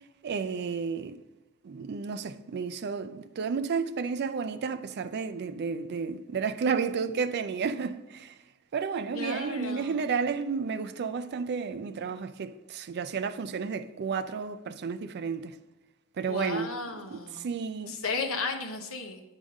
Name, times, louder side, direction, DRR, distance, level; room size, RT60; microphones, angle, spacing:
voice 1, 0.2-1.2 1.6-8.3 8.7-15.6 16.2-16.7 17.1-18.0, right 5 dB, 50° right, 0.4 m, -32 dB
voice 2, 9.1-10.0 16.3-17.5 17.9-19.2, left 4 dB, 65° left, 0.9 m, -34 dB
8.8 x 3.6 x 5.2 m
head